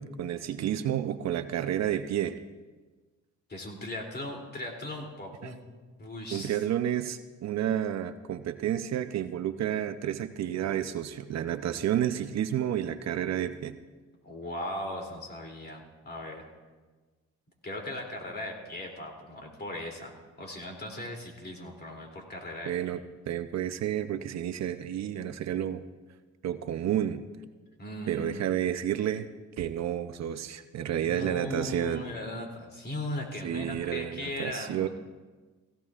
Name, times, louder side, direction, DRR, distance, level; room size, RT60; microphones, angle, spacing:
voice 1, 0.0-2.4 6.3-13.8 22.7-23.0 23.3-25.8 26.4-27.2 28.1-29.3 29.6-32.0 33.4-34.9, right 10 dB, 60° right, 10 dB, 0.7 m, -30 dB
voice 2, 3.5-5.6 6.0-6.6 14.2-16.4 17.6-22.7 27.8-28.4 30.8-34.9, left 1 dB, 35° left, 1 dB, 3.0 m, -38 dB
16.5 x 16.5 x 2.5 m, 1.3 s
cardioid pair, 90°, 30 cm